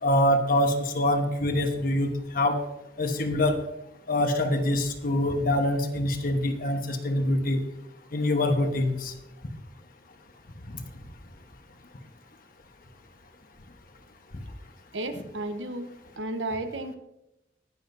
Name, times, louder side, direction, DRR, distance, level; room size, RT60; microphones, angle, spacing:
voice 1, 0.0-2.1 2.3-2.6 3.0-3.6 4.1-7.6 8.1-9.1, left 1 dB, 50° left, 5 dB, 1.2 m, -24 dB
voice 2, 14.9-15.9 16.2-17.0, right 2 dB, 90° right, 8 dB, 1.0 m, -33 dB
20.0 x 7.3 x 2.7 m, 0.87 s
head